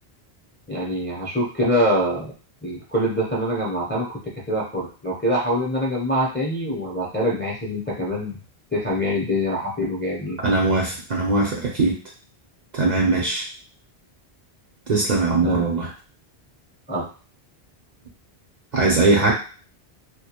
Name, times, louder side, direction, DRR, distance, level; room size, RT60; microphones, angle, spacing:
voice 1, 0.7-2.3 2.6-4.2 4.5-8.4 8.7-10.4 15.4-15.7 16.9-17.0, equal, 15° left, -4 dB, 0.4 m, -24 dB
voice 2, 10.4-11.9 12.7-13.4 14.9-15.9 18.7-19.3, right 3 dB, 55° right, -3 dB, 0.5 m, -20 dB
2.3 x 2.1 x 2.8 m, 0.38 s
omnidirectional pair, 1.1 m